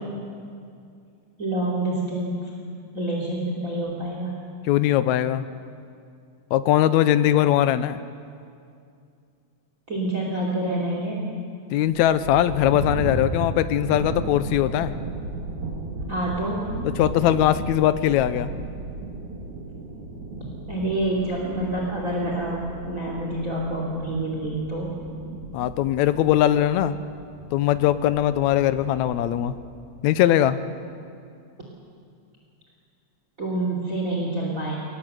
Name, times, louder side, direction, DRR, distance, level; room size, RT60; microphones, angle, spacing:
voice 1, 1.4-2.5 2.9-4.3 9.9-11.3 16.1-16.7 20.7-24.9 33.4-34.8, right 1 dB, 30° right, -2 dB, 3.0 m, -27 dB
voice 2, 4.7-5.4 6.5-8.0 11.7-14.9 17.0-18.5 25.5-26.9 27.5-29.6 30.0-30.6, left 12 dB, 80° left, 12 dB, 2.0 m, -20 dB
sound 1, 11.9-29.9, right 2 dB, 80° right, 4.0 m, -35 dB
23.0 x 19.0 x 7.9 m, 2.4 s
omnidirectional pair, 3.4 m